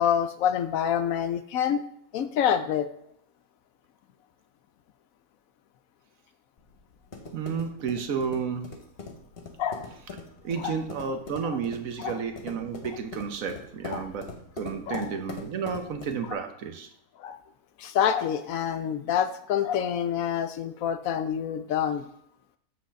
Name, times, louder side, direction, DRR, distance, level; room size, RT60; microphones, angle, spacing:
voice 1, 0.0-1.8 2.1-2.9 9.6-9.9 10.6-10.8 12.0-12.2 12.9-13.0 13.9-14.1 14.9-15.2 16.2-16.4 17.2-17.4 17.8-22.0, left 9 dB, 70° left, 9 dB, 0.9 m, -27 dB
sound 1, 6.6-16.4, left 3 dB, 40° left, 1.3 m, -42 dB
voice 2, 7.3-8.7 10.4-14.3 14.6-16.9, right 6 dB, 65° right, 7 dB, 1.2 m, -31 dB
7.8 x 4.1 x 6.3 m, 0.71 s
omnidirectional pair, 1.6 m